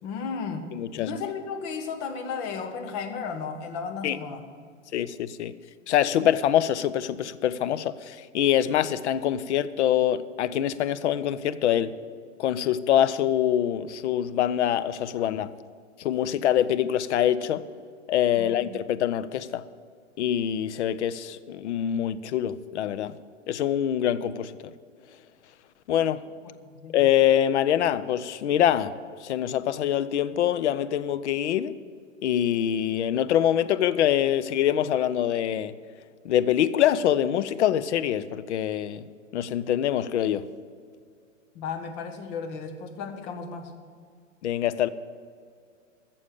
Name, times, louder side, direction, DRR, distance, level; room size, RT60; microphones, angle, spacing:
voice 1, 0.0-0.7 1.0-4.4 18.4-18.7 26.4-27.0 41.5-43.7, left 5 dB, 40° left, 1.5 m, -34 dB
voice 2, 0.7-1.2 4.0-4.2 4.9-5.5 5.9-12.0 12.4-15.5 16.0-17.6 18.1-19.6 20.2-23.1 23.5-24.7 25.9-26.2 26.9-28.9 29.2-31.7 32.2-35.7 36.2-39.0 39.3-40.5 44.4-44.9, left 10 dB, 60° left, 0.7 m, -24 dB
14.5 x 7.0 x 8.4 m
hypercardioid pair, 120°, 39 cm